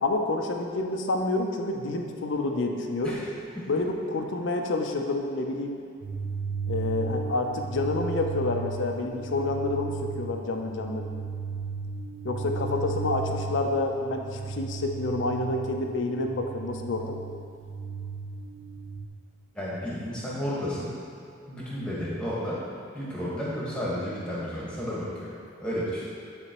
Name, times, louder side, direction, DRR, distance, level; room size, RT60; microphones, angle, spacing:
voice 1, 0.0-3.2 3.7-5.8 6.7-11.1 12.2-17.2, left 2 dB, 70° left, 3 dB, 0.5 m, -28 dB
sound 1, 6.0-19.1, right 4 dB, 85° right, 0.5 m, -35 dB
voice 2, 19.5-20.9 21.5-22.6 22.9-25.3 25.6-26.0, equal, 5° left, -8 dB, 1.3 m, -32 dB
9.1 x 4.2 x 3.0 m, 2.4 s
head